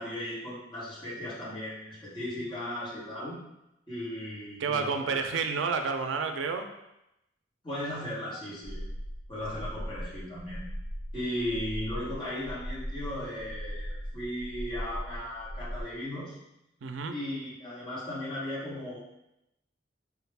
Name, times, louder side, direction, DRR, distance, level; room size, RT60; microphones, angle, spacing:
voice 1, 0.0-3.4 3.9-5.2 7.6-8.8 9.3-10.6 11.1-16.4 17.1-19.0, left 1 dB, 25° left, -9 dB, 1.3 m, -36 dB
voice 2, 4.6-6.7 16.8-17.2, right 5 dB, 90° right, 6 dB, 0.4 m, -30 dB
sound 1, 8.7-15.8, equal, 60° left, 0.6 m, -39 dB
4.9 x 2.3 x 3.3 m, 0.87 s
head